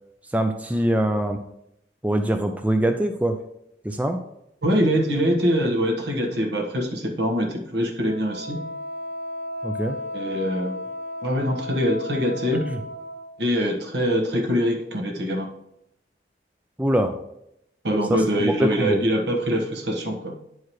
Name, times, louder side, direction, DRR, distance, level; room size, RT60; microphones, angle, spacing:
voice 1, 0.3-1.4 2.0-3.4 3.8-4.2 9.6-10.0 12.7-12.8 16.8-17.1 18.1-19.0, right 1 dB, 10° right, 5 dB, 0.3 m, -23 dB
voice 2, 4.6-8.6 10.1-10.8 11.2-12.6 13.4-15.5 17.8-20.3, equal, 75° right, 2 dB, 1.3 m, -23 dB
Wind instrument woodwind instrument, 8.1-13.3, left 1 dB, 35° right, 0.7 m, -34 dB
9.4 x 4.7 x 3.0 m, 0.78 s
head